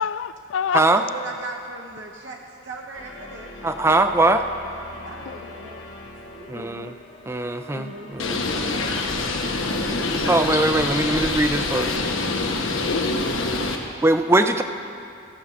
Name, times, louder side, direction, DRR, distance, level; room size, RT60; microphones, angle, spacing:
voice 1, 0.0-0.8 5.3-5.7 6.5-6.9 7.7-8.0 8.4-8.5 12.8-13.2, left 7 dB, 65° left, 15 dB, 0.3 m, -29 dB
voice 2, 0.7-3.5 4.9-5.8 6.2-6.8 7.9-10.0, right 3 dB, 60° right, -1 dB, 0.9 m, -39 dB
sound 1, 2.9-9.7, left 2 dB, 35° left, 1.4 m, -43 dB
voice 3, 3.6-4.4 6.5-6.9 7.3-8.4 10.3-12.0 14.0-14.6, right 2 dB, 15° right, 8 dB, 0.4 m, -21 dB
Bird, 8.2-13.8, left 3 dB, 85° left, 1.0 m, -25 dB
14.5 x 5.5 x 7.1 m, 2.5 s
head